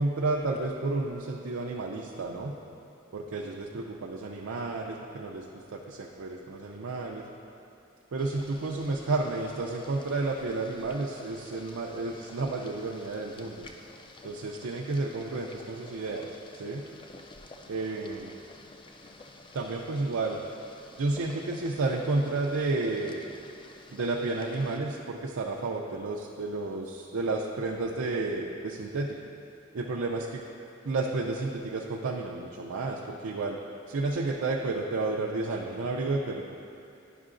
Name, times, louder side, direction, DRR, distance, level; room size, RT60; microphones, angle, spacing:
voice 1, 0.0-2.5 3.1-7.2 8.1-13.7 14.2-16.3 16.6-16.8 17.7-18.3 19.5-20.4 21.0-23.2 23.9-29.2 29.7-30.4 30.8-33.6 33.9-36.5, right 3 dB, 80° right, -2 dB, 0.5 m, -31 dB
Boiling, 8.2-24.8, left 2 dB, 25° left, 0.4 m, -50 dB
11.0 x 5.5 x 2.5 m, 2.7 s
head